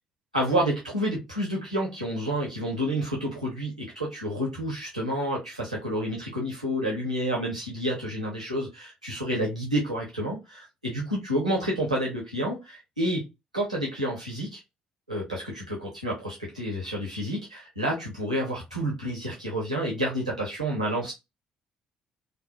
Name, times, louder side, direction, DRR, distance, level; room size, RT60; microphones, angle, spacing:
voice 1, 0.3-13.3 13.5-14.6 15.1-21.1, equal, 90° right, -2 dB, 0.8 m, -29 dB
3.3 x 2.3 x 2.3 m, 0.22 s
figure-of-eight pair, 45°, 4 cm